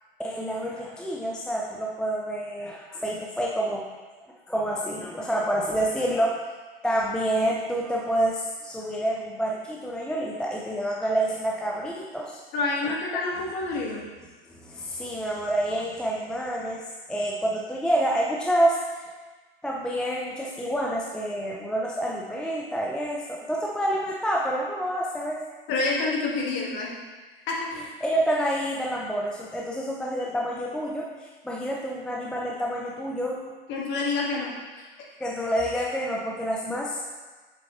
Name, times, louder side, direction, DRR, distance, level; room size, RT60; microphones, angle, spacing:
voice 1, 0.2-3.8 4.5-6.5 6.8-12.4 12.8-12.9 14.5-19.1 19.6-25.4 27.8-33.4 35.2-37.1, right 1 dB, 5° left, -3 dB, 0.4 m, -28 dB
voice 2, 12.5-14.0 25.7-27.0 27.5-27.7 33.7-35.2, left 3 dB, 35° left, -2 dB, 1.7 m, -28 dB
7.3 x 6.0 x 3.0 m, 1.3 s
hypercardioid pair, 105°, 30 cm